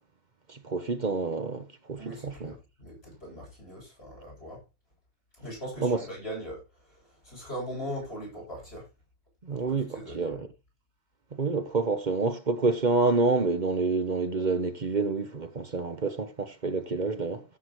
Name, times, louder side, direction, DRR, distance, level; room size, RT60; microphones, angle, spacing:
voice 1, 0.5-2.5 5.8-6.0 9.4-10.5 11.4-17.4, right 3 dB, 45° right, 1.1 m, -28 dB
voice 2, 2.0-4.6 5.3-8.9 9.5-10.5, equal, 70° left, 8.4 m, -40 dB
15.5 x 7.9 x 3.1 m
omnidirectional pair, 1.1 m